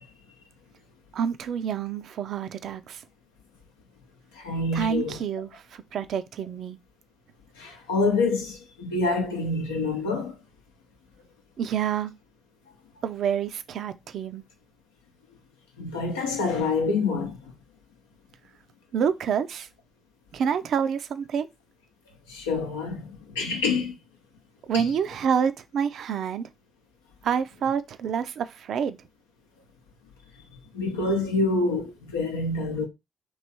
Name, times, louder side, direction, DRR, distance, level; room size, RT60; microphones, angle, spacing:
voice 1, 1.1-3.0 4.7-6.8 11.6-12.1 13.0-14.4 18.9-19.7 20.3-21.5 24.7-26.5 27.2-29.0, right 7 dB, 60° right, 0.4 m, -28 dB
voice 2, 4.3-5.2 7.6-10.4 15.8-17.4 22.3-24.0 24.7-24.8 30.7-32.9, left 3 dB, 85° left, 0.6 m, -27 dB
3.1 x 2.9 x 4.1 m
hypercardioid pair, 40°, 0 cm